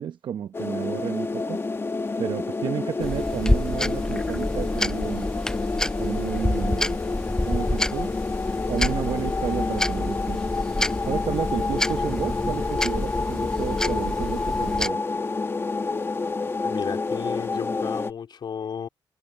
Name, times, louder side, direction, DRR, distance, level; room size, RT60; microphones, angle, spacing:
voice 1, 0.0-1.6 2.2-5.3 6.0-7.0 7.4-8.1 8.7-10.4 11.1-15.0, right 9 dB, 70° right, 0.8 m, -31 dB
sound 1, 0.5-18.1, left 3 dB, 30° left, 1.2 m, -28 dB
sound 2, 3.0-14.9, left 1 dB, 5° left, 0.5 m, -28 dB
voice 2, 16.6-18.9, left 7 dB, 60° left, 3.6 m, -32 dB
cardioid pair, 85°, 9 cm